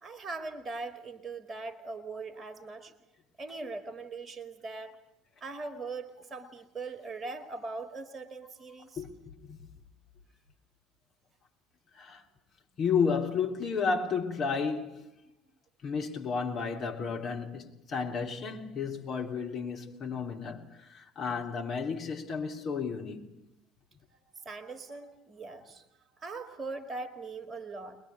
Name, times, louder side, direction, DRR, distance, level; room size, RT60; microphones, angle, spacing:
voice 1, 0.0-2.9 3.4-5.0 5.4-9.0 24.4-25.9 26.2-28.0, right 3 dB, 30° right, 2.1 m, -40 dB
voice 2, 9.0-9.6 11.9-12.2 12.8-15.0 15.8-23.3, left 5 dB, 40° left, 3.5 m, -32 dB
22.5 x 21.5 x 9.8 m
figure-of-eight pair, 60°, 0 cm